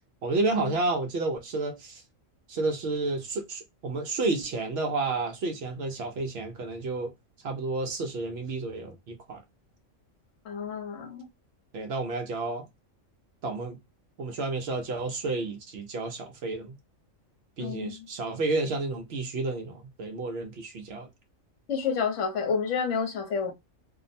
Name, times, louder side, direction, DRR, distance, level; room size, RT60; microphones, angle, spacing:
voice 1, 0.2-2.0 2.5-7.1 7.4-9.4 11.7-12.7 13.4-13.8 14.2-16.7 17.6-21.1, right 3 dB, 65° right, 0.7 m, -31 dB
voice 2, 10.5-11.2 17.6-18.0 21.7-23.5, left 6 dB, 70° left, 1.1 m, -29 dB
2.5 x 2.0 x 2.6 m
omnidirectional pair, 1.4 m